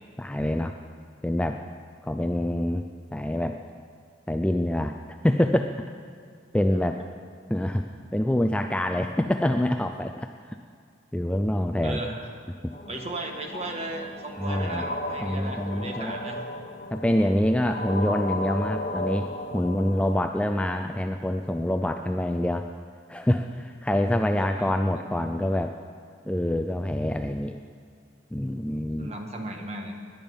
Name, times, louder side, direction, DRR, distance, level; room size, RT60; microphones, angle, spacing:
voice 1, 0.2-0.7 1.2-1.6 2.0-2.8 3.1-3.6 4.3-4.9 5.2-5.7 6.5-7.0 7.5-7.8 8.1-10.6 11.1-12.0 12.6-12.7 14.4-14.9 15.2-16.2 16.9-19.3 19.5-22.7 23.1-25.8 26.3-27.5 28.3-29.2, left 1 dB, 5° left, 5 dB, 0.3 m, -26 dB
voice 2, 11.8-12.3 12.9-16.4 24.5-25.3 28.9-29.9, right 2 dB, 35° right, 2 dB, 1.5 m, -36 dB
sound 1, 12.7-20.2, left 1 dB, 40° left, 1.0 m, -35 dB
17.5 x 10.5 x 5.4 m, 2.2 s
head